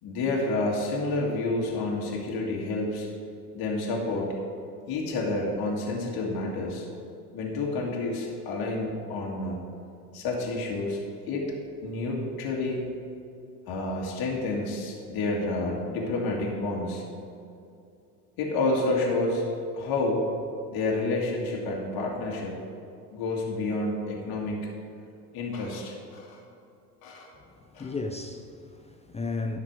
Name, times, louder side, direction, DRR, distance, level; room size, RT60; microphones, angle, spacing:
voice 1, 0.0-3.1 3.5-4.3 4.9-6.9 7.3-9.6 10.1-11.6 11.8-12.9 13.7-17.0 18.4-19.4 19.7-20.2 20.7-22.5 23.1-24.7 25.3-26.4 27.0-27.3 27.7-27.9, left 2 dB, 50° left, 2.0 m, -29 dB
voice 2, 27.6-29.6, left 3 dB, 15° left, 0.5 m, -34 dB
10.5 x 5.9 x 4.8 m
hypercardioid pair, 80°, 45 cm